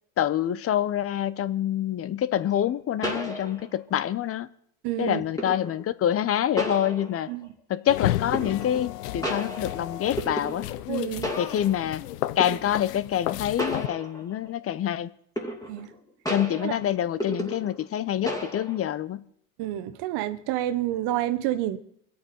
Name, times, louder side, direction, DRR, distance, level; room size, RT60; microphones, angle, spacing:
voice 1, 0.2-4.5 5.0-7.3 7.7-10.7 11.4-12.0 12.4-15.1 16.3-19.2, left 11 dB, 30° left, 0.8 m, -26 dB
sound 1, 2.4-2.5 3.0-3.9 5.4-5.8 6.6-7.5 8.3-8.9 9.2-10.9 11.2-12.0 12.4-12.8 13.6-14.5 15.4-15.9 16.3-17.9 18.3-18.9, left 1 dB, 5° left, 2.5 m, -33 dB
voice 2, 4.8-5.2 7.3-7.5 10.9-11.3 15.7-15.9 16.6-16.8 19.6-21.8, right 13 dB, 55° right, 1.4 m, -29 dB
sound 2, 7.9-13.9, left 15 dB, 85° left, 0.8 m, -32 dB
23.5 x 8.7 x 4.4 m
supercardioid pair, 100°, 46 cm